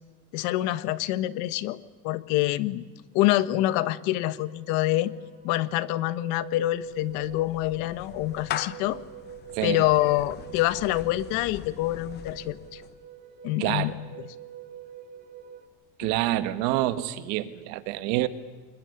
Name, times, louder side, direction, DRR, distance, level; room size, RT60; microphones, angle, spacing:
voice 1, 0.3-1.8 2.0-2.8 3.1-5.1 5.4-9.0 9.6-12.8 13.4-13.9, left 16 dB, 65° left, 14 dB, 1.3 m, -26 dB
sound 1, 2.8-2.9 3.2-15.7, right 10 dB, 30° right, 3.6 m, -46 dB
Clapping / Meow, 6.6-13.0, left 12 dB, 35° left, 0.8 m, -41 dB
voice 2, 9.5-9.9 13.6-14.0 16.0-18.3, right 15 dB, 70° right, 11 dB, 1.7 m, -27 dB
24.5 x 21.5 x 9.8 m, 1.3 s
cardioid pair, 165°, 30 cm